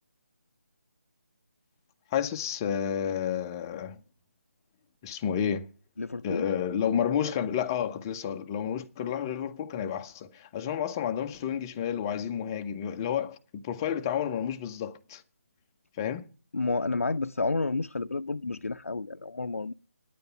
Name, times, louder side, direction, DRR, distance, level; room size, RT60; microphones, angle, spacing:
voice 1, 2.1-4.0 5.0-5.7 6.2-15.2 16.0-16.2, left 8 dB, 15° left, 0.6 m, -30 dB
voice 2, 6.0-6.5 16.5-19.7, left 3 dB, 65° left, 0.5 m, -30 dB
10.0 x 8.0 x 9.6 m
figure-of-eight pair, 155°, 8 cm